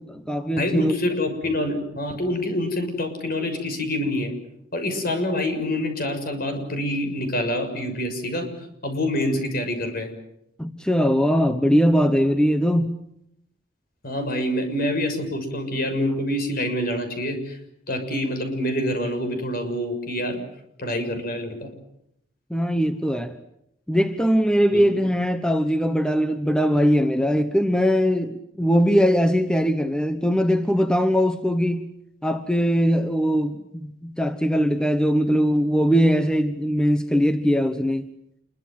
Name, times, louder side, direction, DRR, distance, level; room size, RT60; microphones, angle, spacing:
voice 1, 0.0-0.9 10.6-13.0 22.5-23.4 23.9-31.9 32.2-38.1, equal, 5° left, 1.1 m, -21 dB
voice 2, 0.6-4.3 4.7-8.5 8.8-10.1 14.0-17.6 17.9-20.4 20.8-21.7 24.7-24.8, left 1 dB, 55° left, 6.6 m, -26 dB
28.0 x 23.0 x 7.7 m
head